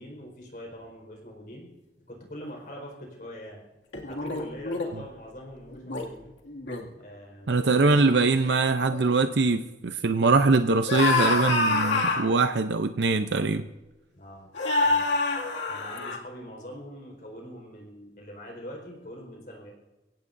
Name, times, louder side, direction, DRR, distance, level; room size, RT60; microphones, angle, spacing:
voice 1, 0.0-1.7 2.1-3.6 4.0-6.2 6.9-7.9 14.1-14.5 14.8-15.1 15.7-19.7, equal, 50° left, 0 dB, 4.6 m, -43 dB
sound 1, 3.9-4.9 5.7-6.0 6.5-6.9 7.5-7.6 7.9-8.2 8.9-9.1 10.9-12.3 13.3-13.4 14.5-16.2, left 3 dB, 90° left, 2.3 m, -26 dB
voice 2, 7.5-13.6, right 3 dB, 75° right, 8 dB, 0.6 m, -22 dB
24.5 x 17.0 x 2.7 m, 1.0 s
head